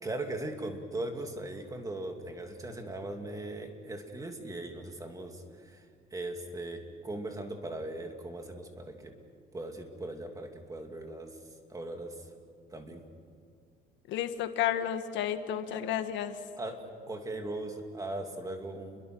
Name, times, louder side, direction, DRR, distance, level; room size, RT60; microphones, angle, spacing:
voice 1, 0.0-5.8 6.1-9.1 9.5-11.3 11.7-12.3 12.7-13.0 15.7-15.8 16.6-19.0, right 2 dB, 20° right, 4 dB, 2.6 m, -39 dB
voice 2, 14.1-16.4, left 10 dB, 80° left, 9 dB, 1.4 m, -31 dB
30.0 x 22.5 x 6.2 m, 2.2 s
cardioid pair, 135°, 19 cm